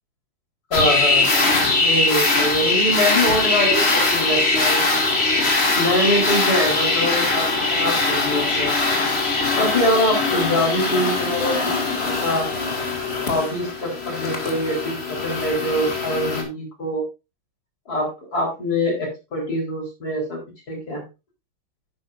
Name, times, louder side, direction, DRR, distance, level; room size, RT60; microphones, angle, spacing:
voice 1, 0.7-4.8 5.7-8.8 9.6-11.7 12.2-12.5 13.3-17.0 17.9-20.4 20.7-21.0, left 1 dB, 45° left, 0 dB, 4.6 m, -24 dB
sound 1, 0.7-16.4, left 3 dB, 30° left, 2.4 m, -21 dB
10.0 x 9.7 x 2.6 m, 0.27 s
omnidirectional pair, 2.3 m